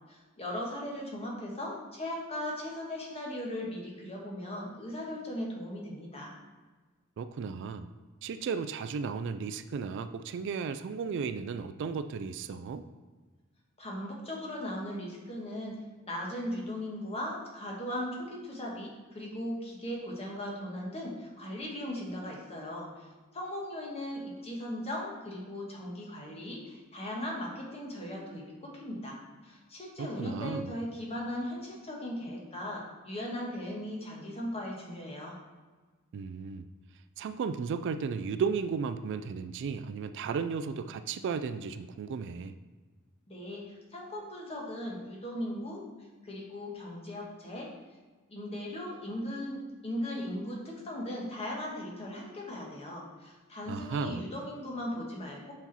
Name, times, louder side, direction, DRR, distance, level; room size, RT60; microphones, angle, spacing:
voice 1, 0.1-6.3 13.8-23.1 23.3-29.2 29.4-35.4 43.3-45.8 46.2-47.7 48.3-55.5, left 1 dB, 30° left, -2 dB, 1.3 m, -38 dB
voice 2, 7.2-7.9 8.2-12.8 30.0-30.7 36.1-36.7 37.2-42.5 53.7-54.2, right 5 dB, 55° right, 10 dB, 0.3 m, -34 dB
5.9 x 4.3 x 4.1 m, 1.3 s
head